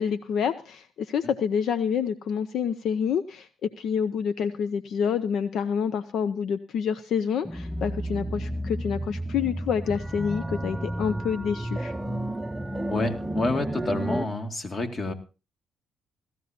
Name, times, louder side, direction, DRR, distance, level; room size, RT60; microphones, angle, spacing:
voice 1, 0.0-11.9, left 7 dB, 70° left, 12 dB, 0.6 m, -28 dB
sound 1, 7.5-14.3, right 1 dB, 10° right, 0.6 m, -32 dB
voice 2, 12.9-15.1, left 2 dB, 40° left, 5 dB, 2.2 m, -28 dB
17.5 x 14.0 x 2.9 m, 0.31 s
cardioid pair, 90°, 0 cm